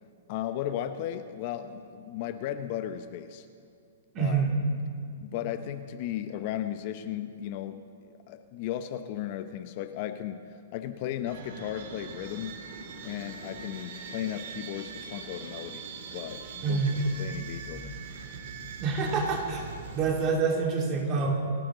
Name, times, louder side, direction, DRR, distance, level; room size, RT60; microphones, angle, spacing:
voice 1, 0.3-3.5 4.2-4.4 5.2-7.8 8.1-12.6 13.0-15.9 16.1-16.8 17.2-18.0, left 11 dB, 45° left, 10 dB, 0.8 m, -35 dB
voice 2, 4.1-4.5 16.6-17.0 18.8-19.6 19.9-21.3, right 5 dB, 30° right, 0 dB, 2.9 m, -26 dB
sound 1, 11.3-20.2, right 5 dB, 55° right, 2.1 m, -42 dB
29.0 x 11.0 x 3.9 m, 2.5 s
hypercardioid pair, 145°, 0 cm